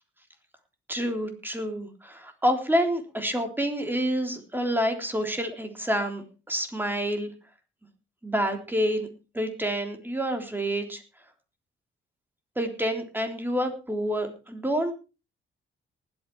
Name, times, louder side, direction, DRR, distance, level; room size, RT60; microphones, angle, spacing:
voice 1, 0.9-7.3 8.2-9.1 9.3-11.0 12.6-14.9, equal, 10° right, 5 dB, 3.5 m, -28 dB
19.0 x 8.9 x 4.6 m, 0.32 s
cardioid pair, 90°, 20 cm